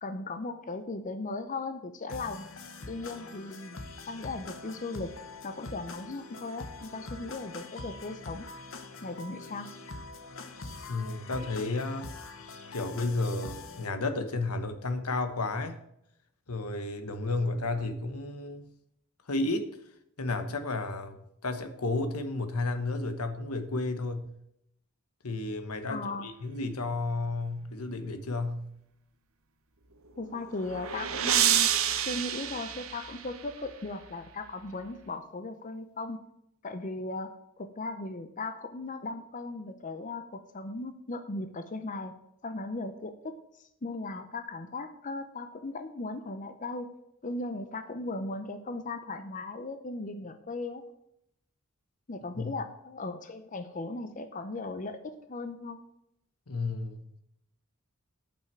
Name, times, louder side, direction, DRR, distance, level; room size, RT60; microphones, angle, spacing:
voice 1, 0.0-2.4 2.9-3.8 4.1-5.1 5.4-8.5 9.0-9.7 25.9-26.3 30.2-36.2 36.6-37.3 37.6-42.1 42.4-46.9 47.2-50.8 52.1-55.8, left 2 dB, 35° left, 8 dB, 0.6 m, -37 dB
sound 1, 2.1-13.9, left 3 dB, 60° left, 1.0 m, -44 dB
voice 2, 10.9-12.1 12.7-15.8 16.5-18.7 19.3-19.8 20.2-24.3 25.2-28.7 52.3-52.5 56.5-57.0, left 2 dB, 80° left, 9 dB, 1.2 m, -32 dB
sound 2, 30.2-33.6, right 10 dB, 65° right, 0.9 m, -29 dB
8.8 x 5.8 x 7.4 m, 0.77 s
head